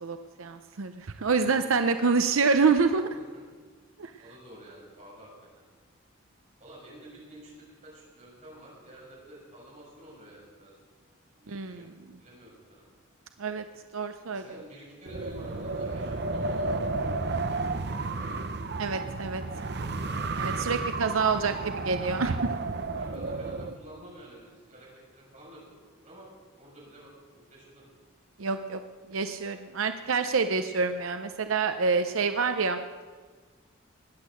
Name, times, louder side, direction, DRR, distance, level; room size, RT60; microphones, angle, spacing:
voice 1, 0.0-3.1 4.0-4.1 11.5-11.9 13.4-13.6 13.9-14.4 18.8-19.4 20.4-21.5 21.9-22.5 28.4-28.8 29.1-32.8, right 4 dB, 90° right, 8 dB, 0.7 m, -27 dB
voice 2, 1.3-2.4 3.1-3.4 4.2-5.6 6.6-10.8 11.3-11.9 12.2-12.8 14.3-16.9 17.2-18.3 19.3-19.9 20.9-21.5 22.9-25.6 26.0-26.3 26.6-27.8, right 1 dB, 35° right, -4 dB, 6.8 m, -50 dB
Wind, 15.1-23.8, right 3 dB, 50° right, 0.7 m, -32 dB
20.0 x 8.4 x 7.7 m, 1.4 s
head